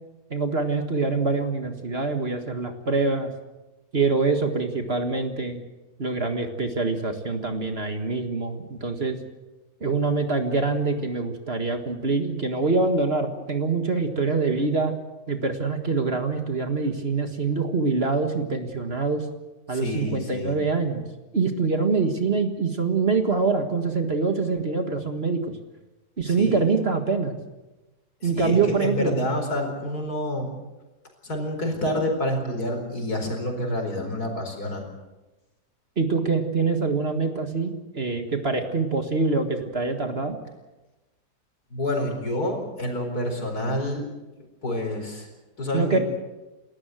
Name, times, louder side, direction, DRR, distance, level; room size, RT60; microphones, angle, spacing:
voice 1, 0.3-3.3 3.9-5.6 6.0-9.2 9.8-14.9 15.3-19.2 19.7-21.0 21.3-25.5 26.2-27.3 28.2-29.2 36.0-40.4 45.7-46.0, right 4 dB, 40° right, 6 dB, 1.9 m, -25 dB
voice 2, 19.7-20.6 26.3-26.8 28.2-30.5 31.2-34.8 41.7-44.0 44.6-45.3 45.6-46.0, left 1 dB, 70° left, 4 dB, 5.0 m, -28 dB
30.0 x 13.5 x 7.8 m, 1.1 s
omnidirectional pair, 1.7 m